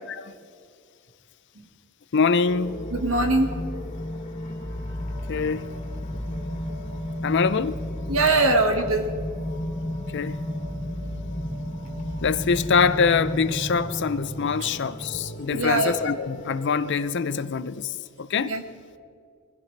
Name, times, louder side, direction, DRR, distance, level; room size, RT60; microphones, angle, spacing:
voice 1, 2.1-2.8 5.3-5.7 7.2-7.8 10.1-10.4 12.2-17.9 18.2-18.5, left 5 dB, 60° left, 0.5 m, -24 dB
sound 1, 2.5-17.0, left 1 dB, 35° left, 2.6 m, -33 dB
voice 2, 2.9-3.5 8.1-9.0 14.6-14.7 15.5-15.9 18.4-18.6, right 2 dB, 90° right, 1.8 m, -22 dB
23.5 x 16.0 x 3.3 m
head